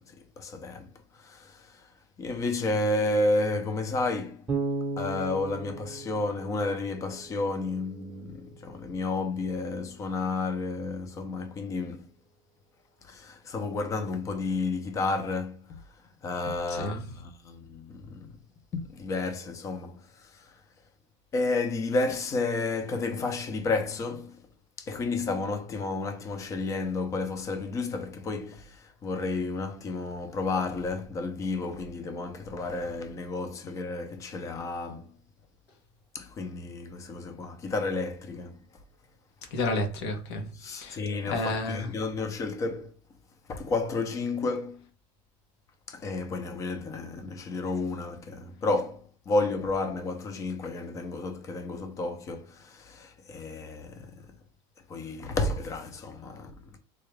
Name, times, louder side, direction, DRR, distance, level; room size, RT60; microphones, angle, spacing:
voice 1, 0.1-1.9 2.2-4.5 5.0-12.1 13.0-15.8 16.2-18.3 18.7-20.5 21.3-24.5 24.8-35.2 36.1-38.6 40.5-42.9 43.5-44.9 45.9-54.4 54.9-56.8, left 3 dB, 25° left, 0.5 m, -31 dB
Bass guitar, 4.5-7.5, right 4 dB, 10° right, 0.8 m, -35 dB
voice 2, 16.7-17.0 39.5-41.0 41.2-41.9, left 2 dB, 85° left, 1.2 m, -31 dB
3.7 x 2.3 x 3.2 m
cardioid pair, 165°, 13 cm